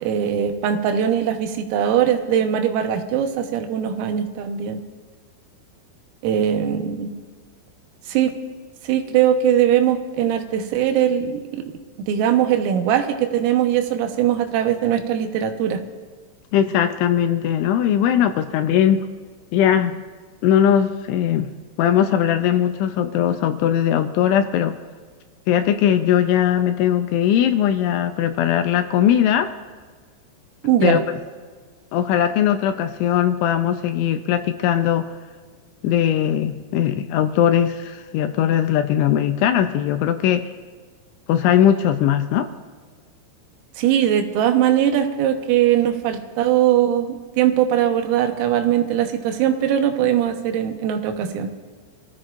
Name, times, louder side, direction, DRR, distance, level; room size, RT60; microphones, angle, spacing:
voice 1, 0.0-4.8 6.2-7.1 8.1-8.3 8.8-11.7 12.1-15.8 30.6-31.0 43.8-51.5, right 10 dB, 90° right, 5 dB, 3.8 m, -20 dB
voice 2, 16.5-19.1 19.5-20.0 20.4-21.5 21.8-24.8 25.5-29.5 30.8-31.0 31.9-35.1 35.8-40.5 41.3-42.5, left 10 dB, 80° left, 8 dB, 2.8 m, -19 dB
26.0 x 15.5 x 2.5 m, 1.5 s
omnidirectional pair, 5.8 m